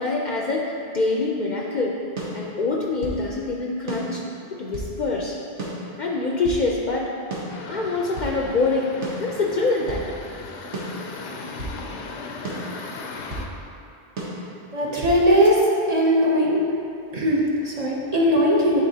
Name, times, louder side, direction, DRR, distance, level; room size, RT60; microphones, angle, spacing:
voice 1, 0.0-2.0 2.3-4.2 4.6-5.3 6.0-7.1 7.7-10.0, left 3 dB, 55° left, -2 dB, 0.6 m, -25 dB
sound 1, 2.2-3.2 3.9-5.0 5.6-6.7 7.3-8.4 9.0-10.1 10.7-11.8 12.4-13.5 14.2-15.2, right 1 dB, 90° right, 1.3 m, -34 dB
sound 2, 7.5-13.5, left 4 dB, 90° left, 0.9 m, -37 dB
voice 2, 14.7-16.6 17.1-18.8, equal, 40° right, -4 dB, 0.7 m, -19 dB
9.6 x 4.1 x 2.7 m, 2.6 s
omnidirectional pair, 1.1 m